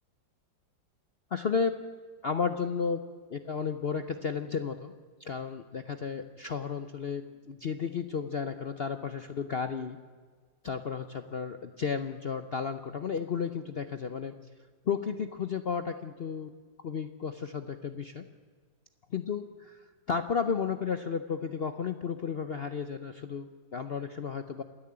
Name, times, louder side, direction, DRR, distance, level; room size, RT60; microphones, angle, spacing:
voice 1, 1.3-1.7 2.2-4.9 5.2-10.0 10.6-14.3 14.9-16.5 16.8-18.2 19.1-24.6, left 6 dB, 75° left, 9 dB, 0.5 m, -33 dB
28.0 x 10.5 x 8.7 m, 1.5 s
omnidirectional pair, 2.1 m